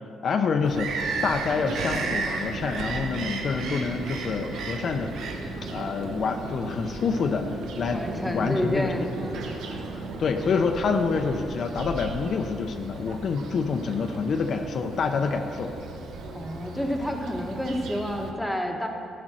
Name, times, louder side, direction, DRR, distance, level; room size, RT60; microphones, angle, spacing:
voice 1, 0.2-5.1 5.6-8.9 10.2-15.8, left 5 dB, 55° left, 5 dB, 0.6 m, -27 dB
Bird vocalization bird call bird song, 0.6-18.3, right 4 dB, 80° right, 1.0 m, -36 dB
sound 1, 0.9-11.4, right 2 dB, 60° right, 1.4 m, -38 dB
voice 2, 7.9-9.6 16.3-18.9, equal, ahead, 1 dB, 1.1 m, -29 dB
13.0 x 5.2 x 6.1 m, 2.7 s
cardioid pair, 90°, 0 cm